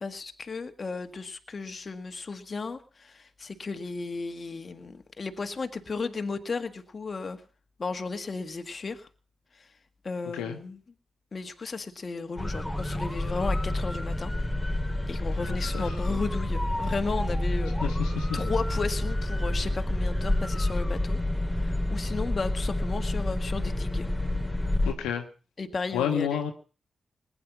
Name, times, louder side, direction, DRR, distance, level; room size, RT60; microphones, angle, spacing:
voice 1, 0.0-7.4 7.8-9.1 9.6-9.7 10.0-10.8 11.3-14.3 15.1-17.9 18.3-21.2 21.5-24.1 25.6-26.5, left 4 dB, 50° left, 8 dB, 1.7 m, -34 dB
sound 1, 12.4-24.9, left 1 dB, 5° left, 3.5 m, -28 dB
voice 2, 15.4-15.9 17.8-18.4 24.8-25.2 25.9-26.5, left 8 dB, 85° left, 5 dB, 1.2 m, -30 dB
20.0 x 9.8 x 5.9 m, 0.38 s
hypercardioid pair, 40°, 0 cm